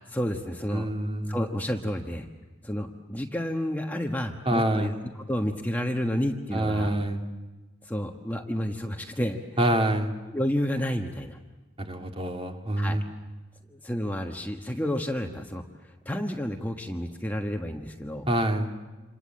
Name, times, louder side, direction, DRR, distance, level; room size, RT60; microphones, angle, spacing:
voice 1, 0.1-0.9 1.3-2.3 2.6-6.9 7.8-9.4 10.3-11.4 12.8-13.0 13.7-18.3, equal, 10° left, 3 dB, 1.3 m, -30 dB
voice 2, 0.7-1.4 4.5-4.9 6.5-7.2 9.6-10.1 11.8-13.0 18.3-18.7, right 1 dB, 30° right, 3 dB, 2.5 m, -26 dB
28.0 x 27.5 x 7.7 m, 1.2 s
head